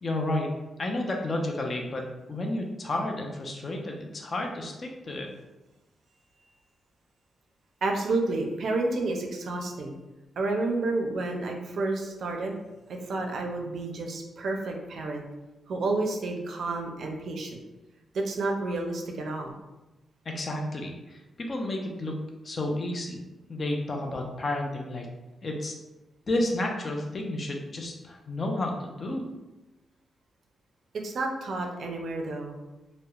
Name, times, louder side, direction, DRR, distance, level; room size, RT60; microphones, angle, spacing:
voice 1, 0.0-5.3 20.3-23.2 23.5-25.1 25.4-25.7 26.3-29.2, left 1 dB, 40° left, 1 dB, 0.4 m, -31 dB
voice 2, 7.8-9.9 10.4-12.6 13.1-15.3 15.7-17.6 18.1-19.5 31.0-32.6, right 2 dB, 65° right, 2 dB, 0.4 m, -30 dB
2.9 x 2.0 x 2.3 m, 1.0 s
cardioid pair, 105°, 0 cm